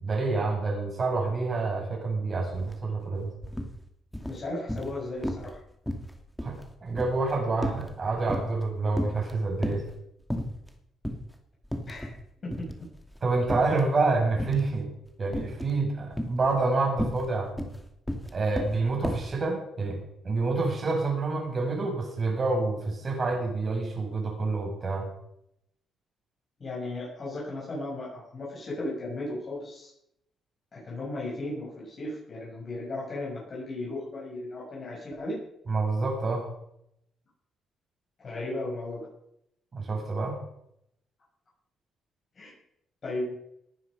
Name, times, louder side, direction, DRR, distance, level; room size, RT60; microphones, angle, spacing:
voice 1, 0.0-3.3 6.4-9.8 13.2-14.9 15.2-17.5 18.3-20.0 20.2-25.1 35.7-36.5 39.7-40.4, right 3 dB, 40° right, 0 dB, 6.7 m, -28 dB
sound 1, 2.5-2.7 3.0-3.7 4.1-5.0 5.2-5.6 5.9-8.7 8.9-9.9 10.3-10.7 11.0-11.2 11.6-12.2 12.5-13.9 14.4-14.8 15.3-15.8 16.1-19.3, equal, 5° left, 2.5 m, -33 dB
voice 2, 4.2-5.6 11.8-12.1 12.4-12.7 26.6-29.9 30.7-35.4 38.2-39.1 42.4-42.5 43.0-43.3, left 2 dB, 45° left, -5 dB, 7.6 m, -35 dB
19.0 x 9.9 x 5.5 m, 0.76 s
cardioid pair, 90°, 0 cm